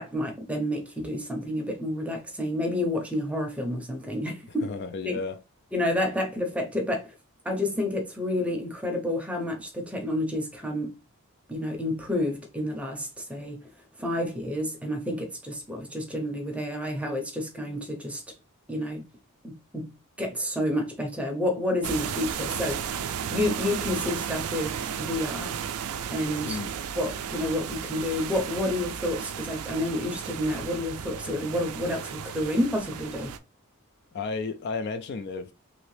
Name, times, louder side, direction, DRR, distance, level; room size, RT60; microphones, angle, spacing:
voice 1, 0.0-4.7 5.0-5.2 5.7-7.1 7.4-10.9 11.5-13.6 14.0-18.2 18.7-19.0 19.4-19.9 20.2-25.6 26.1-26.6 27.0-33.3, left 1 dB, 5° right, 0.6 m, -29 dB
voice 2, 4.5-5.4 26.4-26.7 34.1-35.5, left 4 dB, 50° left, 0.3 m, -33 dB
sound 1, 21.8-33.4, right 8 dB, 85° right, 0.4 m, -34 dB
2.9 x 2.7 x 3.1 m
head